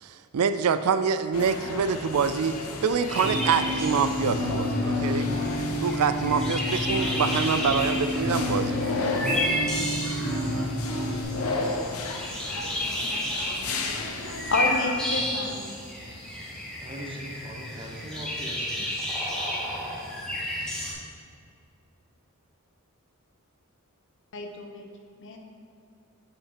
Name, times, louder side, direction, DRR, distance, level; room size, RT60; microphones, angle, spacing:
voice 1, 0.0-2.6 2.8-5.3 5.8-8.8, right 6 dB, 80° right, 11 dB, 0.4 m, -26 dB
sound 1, 1.3-14.6, left 3 dB, 80° left, 0.8 m, -34 dB
sound 2, 2.1-2.2 2.4-2.5 2.7-20.9, equal, 5° left, 1.7 m, -32 dB
sound 3, 3.2-11.2, left 1 dB, 35° left, 1.5 m, -29 dB
voice 2, 14.5-15.8 24.3-24.9 25.2-25.4, left 2 dB, 60° left, 3 dB, 1.0 m, -29 dB
voice 3, 16.8-19.0, equal, 25° right, -1 dB, 1.2 m, -40 dB
8.4 x 5.8 x 5.0 m, 2.4 s
head